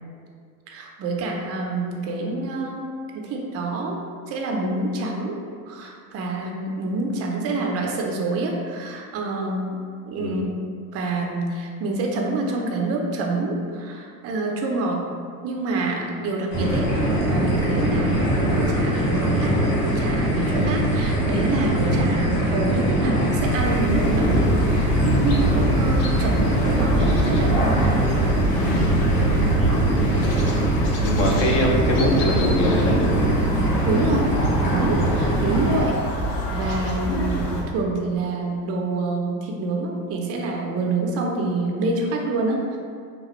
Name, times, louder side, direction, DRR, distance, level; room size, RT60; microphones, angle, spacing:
voice 1, 0.7-5.4 5.7-9.7 10.1-10.4 10.9-15.0 15.4-24.4 24.7-28.1 33.8-34.3 34.7-36.0 36.5-42.8, right 3 dB, 30° right, 0 dB, 0.5 m, -27 dB
sound 1, 16.5-35.8, right 1 dB, 70° left, 1.4 m, -22 dB
sound 2, 23.5-37.6, right 1 dB, 85° left, 0.7 m, -25 dB
voice 2, 29.6-30.0 31.0-33.2, left 1 dB, 30° left, -1 dB, 0.5 m, -23 dB
2.9 x 2.3 x 3.0 m, 2.1 s
hypercardioid pair, 90°, 48 cm